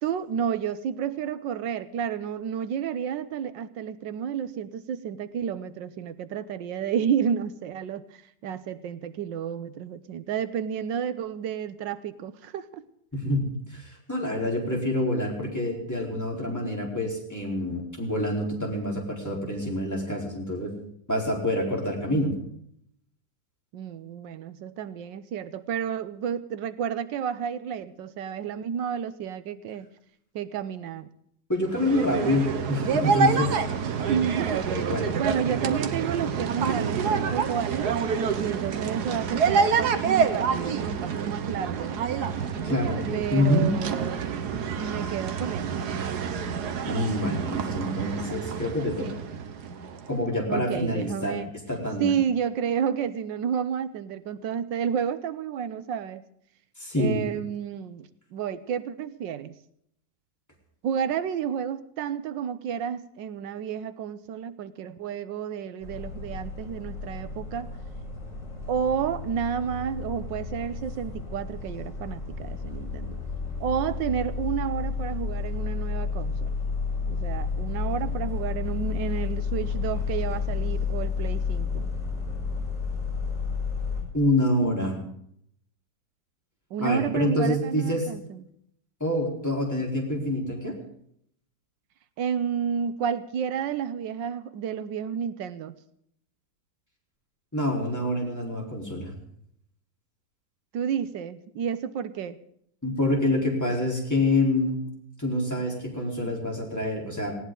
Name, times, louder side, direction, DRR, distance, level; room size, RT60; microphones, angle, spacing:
voice 1, 0.0-12.8 23.7-29.9 30.3-31.1 34.1-38.0 38.4-42.0 43.1-44.3 44.8-45.8 47.9-48.2 50.5-51.5 52.0-56.2 57.0-59.5 60.8-67.7 68.7-73.2 73.6-76.5 77.1-81.9 86.7-88.4 92.2-95.7 100.7-102.4, right 8 dB, 90° right, 13 dB, 1.5 m, -31 dB
voice 2, 13.1-20.7 21.1-22.3 31.5-33.6 34.7-35.1 42.6-43.7 46.8-49.1 50.1-51.4 51.7-52.1 56.8-57.3 84.1-85.0 86.8-88.1 89.0-90.8 97.5-99.1 102.8-104.8 105.2-107.3, left 1 dB, 10° left, -2 dB, 4.1 m, -26 dB
sound 1, 31.7-50.2, right 6 dB, 65° right, 1.6 m, -27 dB
sound 2, 65.8-84.0, left 5 dB, 45° left, 6.0 m, -31 dB
19.0 x 17.0 x 3.9 m, 0.70 s
omnidirectional pair, 1.9 m